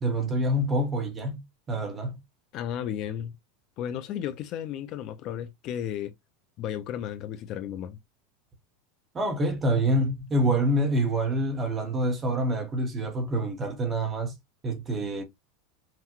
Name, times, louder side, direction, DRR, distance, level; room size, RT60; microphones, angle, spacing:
voice 1, 0.0-1.4 1.7-2.2 9.1-14.3 14.6-15.2, right 1 dB, 15° right, 0.9 m, -26 dB
voice 2, 2.5-3.3 3.8-6.1 6.6-8.0, left 10 dB, 35° left, 0.4 m, -34 dB
5.7 x 2.1 x 2.9 m
supercardioid pair, 175°, 0 cm